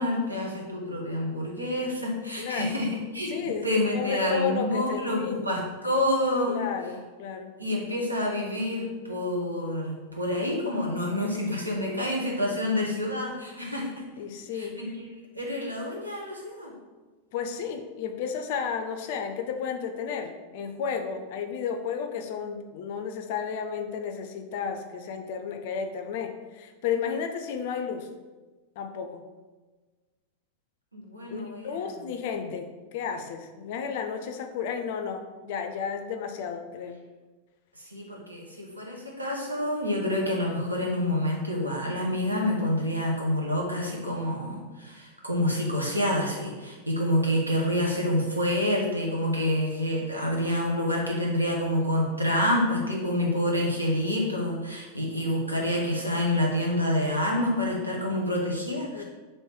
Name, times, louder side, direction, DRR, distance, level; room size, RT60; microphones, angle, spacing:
voice 1, 0.0-2.9 3.1-6.6 7.6-13.9 14.5-14.9 15.3-16.7 30.9-31.9 37.9-59.0, left 1 dB, 85° right, -2 dB, 0.8 m, -28 dB
voice 2, 2.4-2.7 3.3-3.7 3.9-5.5 6.5-7.5 14.2-14.8 17.3-28.1 28.8-29.2 31.3-37.0 50.2-50.3 58.9-59.0, left 6 dB, 50° left, 6 dB, 0.4 m, -32 dB
3.1 x 3.1 x 4.3 m, 1.3 s
figure-of-eight pair, 90°, 0 cm